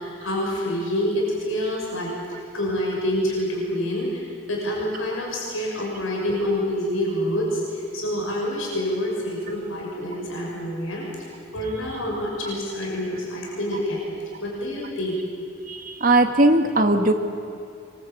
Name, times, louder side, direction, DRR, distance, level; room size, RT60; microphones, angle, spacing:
voice 1, 0.0-14.1 14.4-15.2, left 1 dB, 85° left, -2 dB, 6.2 m, -27 dB
voice 2, 15.7-17.1, right 2 dB, 40° right, 5 dB, 1.7 m, -18 dB
25.0 x 23.0 x 8.4 m, 2.5 s
head